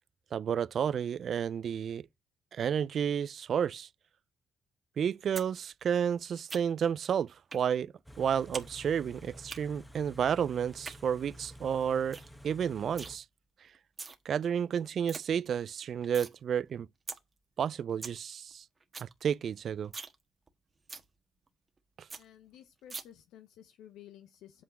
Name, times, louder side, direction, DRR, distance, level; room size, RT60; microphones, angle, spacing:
voice 1, 0.3-2.1 2.5-3.9 5.0-12.2 12.4-13.2 14.3-16.9 17.6-18.6 19.0-19.9, right 8 dB, 60° right, 0.3 m, -31 dB
sound 1, 5.4-5.5 5.8-6.9 7.5-7.7 8.0-8.7 8.9-9.6 10.6-11.0 11.4-11.5 11.8-11.9 12.1-12.3 12.6-13.1 13.7-14.2 14.6-14.7 14.9-15.2 15.6-16.3 16.7-16.8 17.1-17.2 17.6-17.7 17.8-18.2 18.5-18.6 18.8-19.1 19.4-19.5 19.8-20.2 20.5-20.6 20.9-21.1 21.5-21.6 21.8-21.9 22.1-22.2 22.9-23.0, right 4 dB, 35° right, 1.3 m, -42 dB
Car / Idling, 8.0-13.2, equal, 5° left, 1.2 m, -51 dB
voice 2, 22.2-24.6, left 11 dB, 80° left, 0.7 m, -54 dB
8.4 x 3.6 x 6.2 m
supercardioid pair, 60°, 0 cm